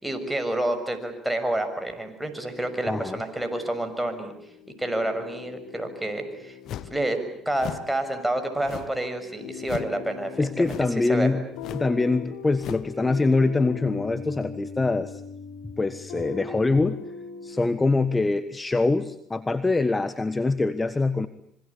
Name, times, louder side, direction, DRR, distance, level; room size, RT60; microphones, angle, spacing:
voice 1, 0.0-4.3 4.8-6.6 6.8-11.3, right 1 dB, 5° right, 6 dB, 6.6 m, -29 dB
sound 1, 2.5-17.8, left 7 dB, 85° left, 4.4 m, -41 dB
voice 2, 2.9-3.2 10.4-11.4 11.7-15.2 15.8-17.0 17.4-21.3, left 3 dB, 20° left, 13 dB, 1.3 m, -24 dB
sound 2, 6.7-7.0 7.6-7.9 8.6-9.1 9.6-10.0 10.6-11.0 11.6-11.9 12.6-12.9, left 11 dB, 65° left, 1.2 m, -37 dB
26.5 x 24.5 x 8.6 m, 0.69 s
supercardioid pair, 75°, 0 cm